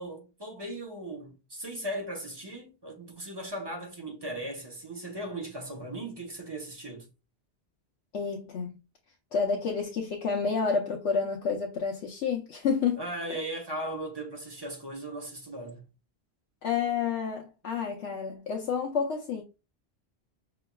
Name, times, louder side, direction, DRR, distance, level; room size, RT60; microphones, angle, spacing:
voice 1, 0.0-7.1 10.4-10.5 13.0-15.8, right 1 dB, 25° right, 1.0 m, -38 dB
voice 2, 8.1-8.8 9.3-13.0 13.3-13.4 16.6-19.4, left 5 dB, 85° left, 1.0 m, -29 dB
5.6 x 2.9 x 2.2 m
omnidirectional pair, 1.1 m